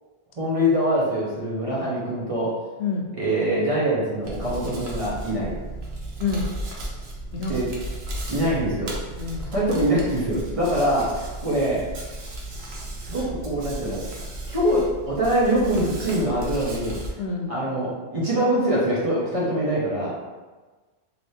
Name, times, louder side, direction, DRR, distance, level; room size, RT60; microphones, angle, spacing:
voice 1, 0.4-2.6 3.1-5.5 7.3-7.7 8.3-8.9 9.5-11.8 13.0-14.0 14.5-17.0 17.5-20.2, right 1 dB, 35° right, -6 dB, 0.8 m, -24 dB
Hands, 4.2-17.1, right 1 dB, 80° right, 1.0 m, -35 dB
voice 2, 7.3-7.6 9.2-9.5 17.2-17.6, left 4 dB, 90° left, 1 dB, 0.8 m, -28 dB
3.3 x 2.9 x 2.7 m, 1.3 s
omnidirectional pair, 1.0 m